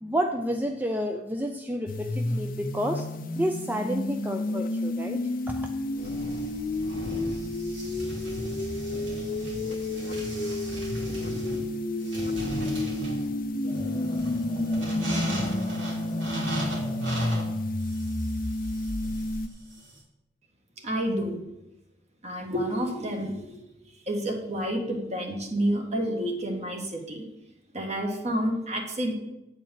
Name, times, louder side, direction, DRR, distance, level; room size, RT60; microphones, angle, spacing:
voice 1, 0.0-3.0 3.4-5.7, equal, 10° right, 4 dB, 0.5 m, -30 dB
sound 1, 1.9-19.5, left 2 dB, 50° left, 0.6 m, -30 dB
sound 2, 6.0-20.0, equal, 85° right, 3.1 m, -36 dB
voice 2, 20.8-21.4 22.2-23.6 24.1-27.2 27.7-29.1, equal, 40° right, 2 dB, 1.6 m, -29 dB
8.8 x 4.5 x 7.3 m, 0.92 s
head